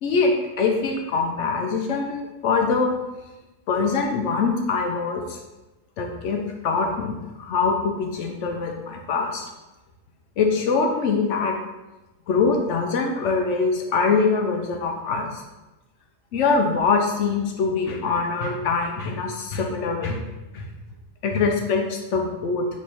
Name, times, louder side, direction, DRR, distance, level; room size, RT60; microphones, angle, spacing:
voice 1, 0.0-3.0 3.7-5.4 6.0-9.4 10.4-11.5 12.3-15.4 16.3-20.2 20.5-20.7 21.2-22.8, left 4 dB, 65° left, 2 dB, 0.8 m, -23 dB
3.4 x 3.0 x 4.1 m, 1.1 s
omnidirectional pair, 1.5 m